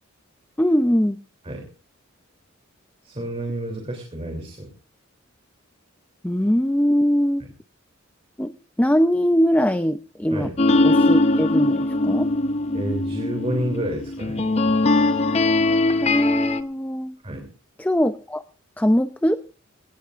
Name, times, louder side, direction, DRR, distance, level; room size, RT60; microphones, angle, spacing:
voice 1, 0.6-1.2 6.2-7.4 8.4-8.5 8.8-10.5 10.8-12.3 16.0-17.2 17.8-18.4 18.8-19.4, equal, 10° left, 9 dB, 0.6 m, -21 dB
voice 2, 3.0-4.7 10.3-10.5 12.7-14.5 17.2-17.5, right 1 dB, 30° right, 2 dB, 3.2 m, -29 dB
sound 1, 10.6-16.6, left 2 dB, 30° left, 1.0 m, -21 dB
22.0 x 18.0 x 2.5 m, 0.35 s
head